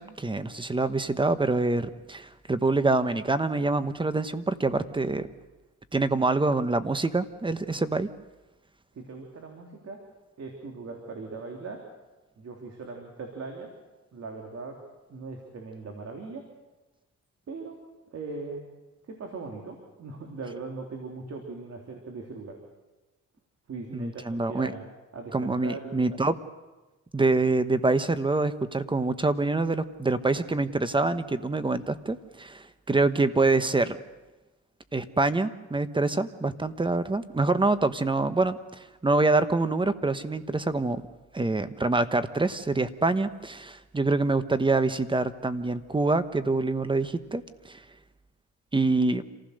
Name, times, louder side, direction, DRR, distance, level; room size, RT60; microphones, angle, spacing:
voice 1, 0.0-5.3 5.9-8.1 23.9-24.7 25.3-26.4 27.1-34.0 34.9-41.0 41.3-47.8 48.7-49.2, right 3 dB, 15° right, 12 dB, 1.1 m, -26 dB
voice 2, 8.9-10.0 10.4-11.8 12.4-13.7 14.1-14.8 15.1-16.4 17.5-17.8 18.1-18.6 19.0-22.6 23.7-24.8 25.1-26.1, right 3 dB, 55° right, 2 dB, 3.3 m, -39 dB
27.0 x 15.5 x 6.6 m, 1.1 s
cardioid pair, 90°, 30 cm